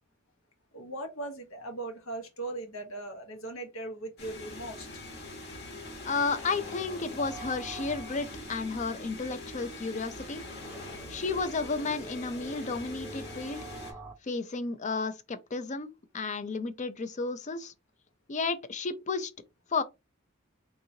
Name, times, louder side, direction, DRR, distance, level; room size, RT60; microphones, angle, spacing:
voice 1, 0.7-4.9, right 2 dB, 85° left, 1.1 m, -39 dB
sound 1, 4.2-13.9, left 2 dB, 55° left, 1.3 m, -43 dB
voice 2, 6.0-10.4 11.1-13.7 14.2-17.7 18.3-19.3 19.7-19.8, left 4 dB, 35° left, 0.5 m, -32 dB
sound 2, 7.2-14.1, right 2 dB, 10° right, 0.6 m, -47 dB
3.7 x 2.9 x 2.7 m
head